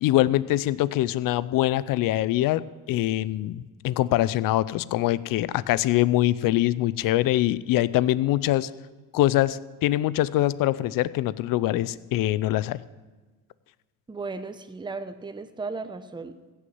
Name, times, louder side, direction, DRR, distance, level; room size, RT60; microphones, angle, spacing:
voice 1, 0.0-2.6 2.9-8.7 9.1-12.8, left 15 dB, 65° left, 18 dB, 0.6 m, -23 dB
voice 2, 14.1-16.5, right 3 dB, 15° right, 9 dB, 0.9 m, -36 dB
15.5 x 6.7 x 7.9 m, 1.3 s
supercardioid pair, 85°, 35 cm